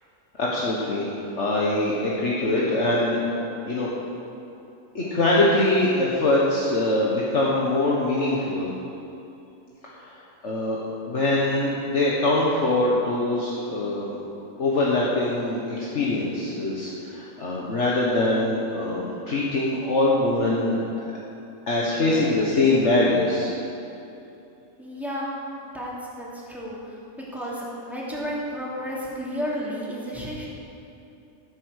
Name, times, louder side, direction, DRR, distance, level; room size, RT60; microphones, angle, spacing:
voice 1, 0.4-1.1 1.4-3.2 3.7-3.9 5.0-8.7 10.0-10.2 10.4-10.8 11.1-14.2 14.6-20.8 21.7-23.5, left 2 dB, 60° left, -5 dB, 1.8 m, -23 dB
voice 2, 24.8-27.0 27.3-30.5, equal, ahead, -6 dB, 2.8 m, -32 dB
15.0 x 8.4 x 6.5 m, 2.8 s
omnidirectional pair, 1.4 m